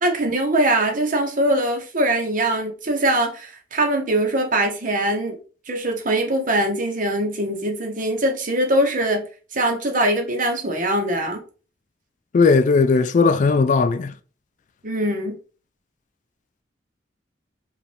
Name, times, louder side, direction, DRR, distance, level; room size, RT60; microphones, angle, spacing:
voice 1, 0.0-5.4 5.7-9.3 9.5-11.4 14.8-15.4, right 1 dB, 50° right, 0.9 m, -22 dB
voice 2, 12.3-14.1, left 4 dB, 45° left, 0.3 m, -17 dB
5.2 x 2.5 x 3.3 m
head